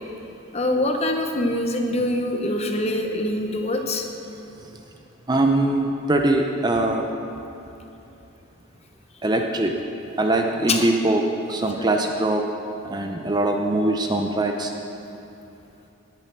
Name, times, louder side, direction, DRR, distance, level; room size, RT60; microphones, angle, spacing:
voice 1, 0.5-4.1 10.7-10.9 11.8-11.9, left 1 dB, 30° left, 4 dB, 0.9 m, -24 dB
voice 2, 5.3-7.1 9.2-9.7 10.2-12.5 12.9-14.7, right 2 dB, 20° right, 3 dB, 0.6 m, -22 dB
17.5 x 7.0 x 6.0 m, 2.8 s
head